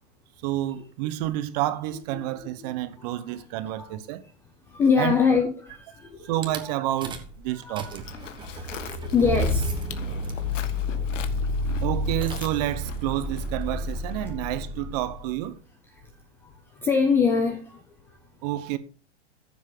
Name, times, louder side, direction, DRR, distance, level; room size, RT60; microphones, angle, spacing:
voice 1, 0.4-4.2 5.0-5.1 6.3-8.0 11.8-15.6 18.4-18.8, right 14 dB, 35° right, 1.0 m, -29 dB
voice 2, 3.7-4.0 4.7-6.3 6.6-6.7 7.5-7.9 8.5-10.0 11.1-11.2 14.2-14.4 15.9-16.1 16.4-18.2, left 5 dB, 5° left, 0.4 m, -25 dB
Rattle / Car / Engine starting, 6.4-6.6 7.0-7.4 7.6-15.4, left 1 dB, 15° right, 1.4 m, -30 dB
Livestock farm animals working animals, 7.9-14.3, left 7 dB, 90° left, 1.8 m, -42 dB
14.5 x 7.2 x 3.8 m
hypercardioid pair, 155°, 36 cm